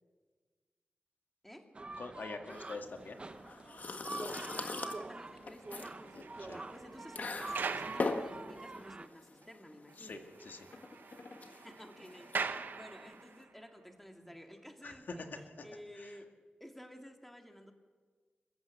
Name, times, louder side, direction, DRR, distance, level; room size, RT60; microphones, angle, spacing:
sound 1, 1.7-9.1, right 3 dB, 35° right, 0.9 m, -46 dB
voice 1, 2.0-3.2 6.5-6.6 10.0-10.7 14.8-14.9 16.0-16.1, left 3 dB, 70° left, 4 dB, 2.0 m, -45 dB
sound 2, 2.5-13.4, left 3 dB, 55° left, 1.6 m, -42 dB
voice 2, 4.3-10.2 11.5-15.3 15.6-16.3 16.6-17.7, equal, 5° left, 4 dB, 2.1 m, -53 dB
sound 3, 5.4-9.1 9.4-9.5 9.9-10.0 10.2-13.5 14.2-14.4, right 5 dB, 75° right, 1.1 m, -43 dB
28.5 x 15.0 x 7.1 m, 1.5 s
wide cardioid pair, 130°, 3 cm